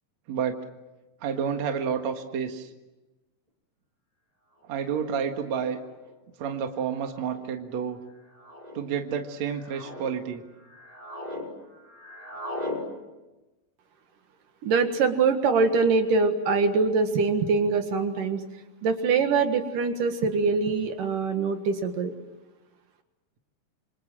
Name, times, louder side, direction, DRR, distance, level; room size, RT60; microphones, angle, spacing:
voice 1, 1.2-2.7 4.7-5.8 6.4-8.0 8.7-10.4, right 7 dB, 60° right, 5 dB, 2.8 m, -30 dB
sound 1, 4.7-4.8 5.8-6.1 7.1-7.5 8.3-8.8 9.4-10.1 10.6-11.5 11.7-12.8, left 1 dB, 10° right, 5.2 m, -38 dB
voice 2, 14.6-18.4 18.8-22.1, right 4 dB, 75° right, 7 dB, 3.3 m, -23 dB
28.0 x 25.5 x 7.6 m, 1.1 s
omnidirectional pair, 3.9 m